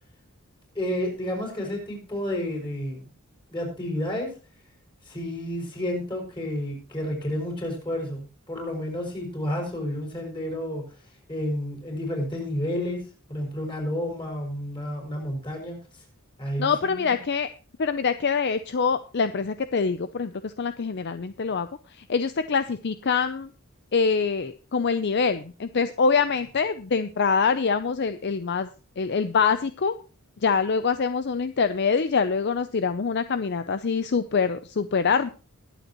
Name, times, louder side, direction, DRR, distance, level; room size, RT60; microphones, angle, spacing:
voice 1, 0.7-3.0 3.5-4.3 5.1-10.9 11.3-15.8 16.4-17.2, left 1 dB, 20° left, 1 dB, 5.5 m, -31 dB
voice 2, 16.6-17.5 17.8-23.5 23.9-28.7 29.0-30.0 30.4-35.3, left 5 dB, 50° left, 12 dB, 0.5 m, -25 dB
20.5 x 8.0 x 3.0 m, 0.36 s
head